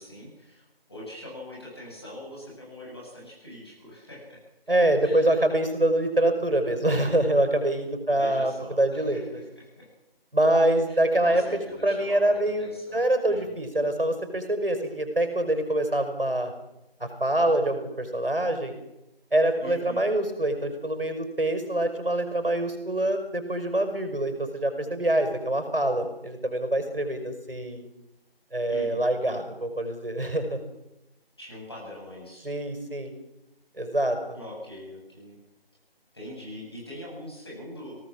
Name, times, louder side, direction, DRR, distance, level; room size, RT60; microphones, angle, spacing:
voice 1, 0.0-4.4 4.7-5.4 8.1-9.9 10.6-13.6 19.6-20.0 28.7-29.1 31.4-32.5 34.3-35.3 36.1-38.0, left 1 dB, 25° left, -4 dB, 8.0 m, -43 dB
voice 2, 4.7-8.5 8.8-9.2 10.3-11.4 11.8-16.5 17.0-18.7 19.3-27.8 28.5-30.6 32.4-33.1 33.8-34.4, right 1 dB, 65° right, 7 dB, 5.6 m, -25 dB
23.0 x 18.5 x 7.4 m, 0.91 s
figure-of-eight pair, 180°, 30 cm